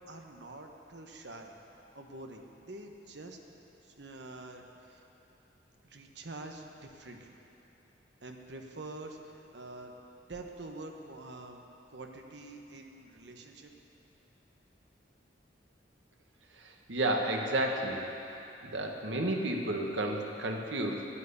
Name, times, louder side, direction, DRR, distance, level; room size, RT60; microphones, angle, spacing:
voice 1, 0.1-1.5 1.9-3.4 3.8-5.0 5.8-7.3 8.2-10.0 10.3-13.7, right 2 dB, 65° right, 3 dB, 1.2 m, -46 dB
voice 2, 16.5-18.1 18.6-21.1, right 1 dB, 80° right, 1 dB, 1.5 m, -32 dB
11.0 x 10.5 x 8.2 m, 2.9 s
head